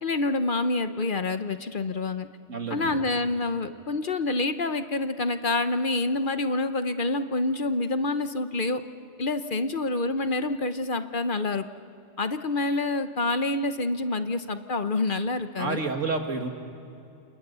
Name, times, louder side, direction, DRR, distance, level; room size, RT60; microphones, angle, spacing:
voice 1, 0.0-2.3 2.7-8.8 9.2-11.6 12.2-15.8, left 2 dB, 45° left, 9 dB, 1.0 m, -27 dB
voice 2, 2.5-3.0 15.6-16.5, right 4 dB, 85° right, 4 dB, 2.4 m, -29 dB
29.0 x 28.5 x 6.9 m, 2.6 s
omnidirectional pair, 1.3 m